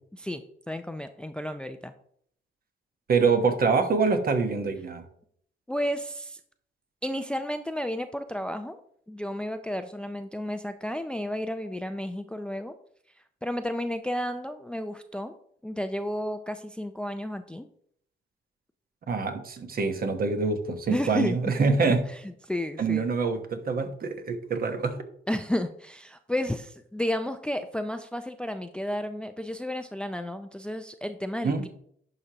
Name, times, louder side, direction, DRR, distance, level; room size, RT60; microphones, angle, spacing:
voice 1, 0.1-1.9 5.7-6.4 7.0-8.8 9.1-12.7 13.4-15.3 15.6-17.7 20.9-21.4 22.1-22.2 22.5-23.0 25.3-31.7, left 1 dB, 5° left, 9 dB, 0.4 m, -32 dB
voice 2, 3.1-5.0 19.1-22.0 22.8-25.0 31.4-31.6, right 4 dB, 50° right, 7 dB, 1.2 m, -25 dB
11.0 x 4.9 x 2.9 m, 0.65 s
cardioid pair, 90°, 20 cm